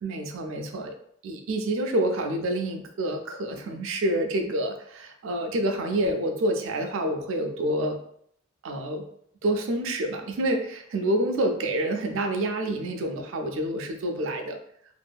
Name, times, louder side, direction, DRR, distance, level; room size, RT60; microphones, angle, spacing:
voice 1, 0.0-1.0 1.2-8.0 8.6-9.1 9.4-14.6, right 1 dB, 75° right, 5 dB, 0.4 m, -28 dB
2.5 x 2.5 x 2.3 m, 0.66 s
head